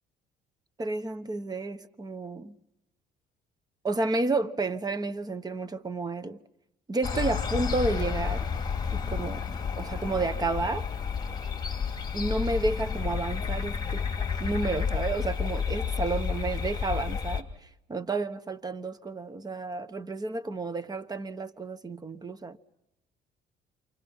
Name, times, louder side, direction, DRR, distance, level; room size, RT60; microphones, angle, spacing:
voice 1, 0.8-2.6 3.8-6.4 6.9-8.5 8.9-9.5 9.8-10.9 12.1-14.1 14.4-17.5 17.9-22.6, right 3 dB, 25° right, 1.1 m, -31 dB
sound 1, 7.0-17.4, left 6 dB, 25° left, 2.8 m, -31 dB
28.5 x 27.0 x 5.6 m
cardioid pair, 110°, 17 cm